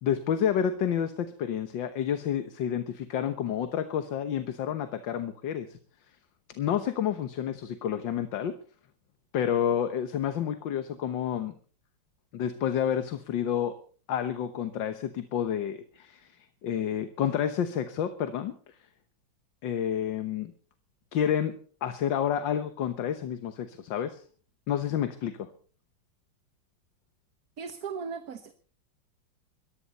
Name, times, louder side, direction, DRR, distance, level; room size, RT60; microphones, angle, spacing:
voice 1, 0.0-5.8 6.6-8.6 9.3-11.6 12.3-13.8 14.1-16.3 16.6-18.5 19.6-20.5 21.1-24.2 24.7-25.5, left 9 dB, 75° left, 10 dB, 1.8 m, -29 dB
voice 2, 27.6-28.5, right 6 dB, 55° right, 9 dB, 1.5 m, -37 dB
20.5 x 15.0 x 4.2 m, 0.42 s
omnidirectional pair, 2.1 m